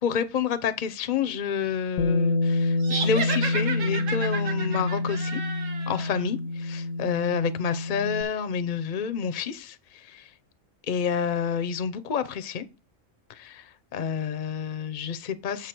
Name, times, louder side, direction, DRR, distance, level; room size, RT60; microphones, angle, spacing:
voice 1, 0.0-5.4 5.9-10.2 10.9-12.6 13.3-15.7, left 7 dB, 45° left, 0.7 m, -29 dB
Bass guitar, 2.0-8.2, left 2 dB, 80° left, 1.1 m, -27 dB
sound 1, 2.8-6.2, right 5 dB, 75° right, 1.4 m, -33 dB
7.3 x 4.9 x 6.0 m
omnidirectional pair, 1.3 m